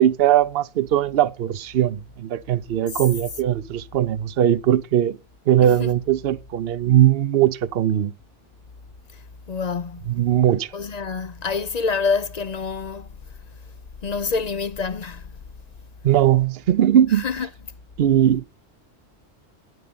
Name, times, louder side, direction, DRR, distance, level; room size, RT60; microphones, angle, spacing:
voice 1, 0.0-5.2 5.5-8.1 10.1-10.7 16.0-17.2 18.0-18.4, right 11 dB, 60° right, 0.9 m, -19 dB
voice 2, 5.6-5.9 9.5-10.1 10.7-13.1 14.0-15.3 17.1-17.5, left 5 dB, 45° left, 0.6 m, -27 dB
9.9 x 9.4 x 3.9 m
omnidirectional pair, 1.2 m